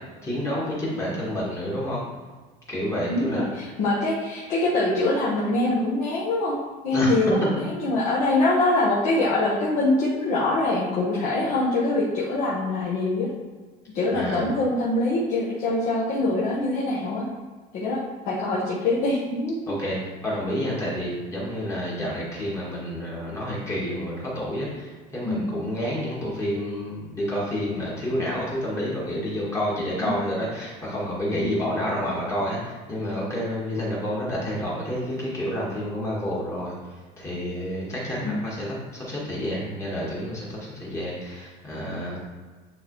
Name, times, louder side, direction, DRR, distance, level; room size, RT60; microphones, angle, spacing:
voice 1, 0.2-2.0 2.7-3.4 6.9-7.2 14.1-14.5 19.7-42.2, equal, 20° left, -6 dB, 1.6 m, -29 dB
voice 2, 3.1-6.6 6.8-7.5 7.8-13.3 13.9-17.3 17.7-19.6 25.2-25.5 30.0-30.2 38.2-38.4, left 2 dB, 55° left, -6 dB, 1.2 m, -24 dB
9.4 x 3.5 x 3.1 m, 1.4 s
cardioid pair, 170°, 16 cm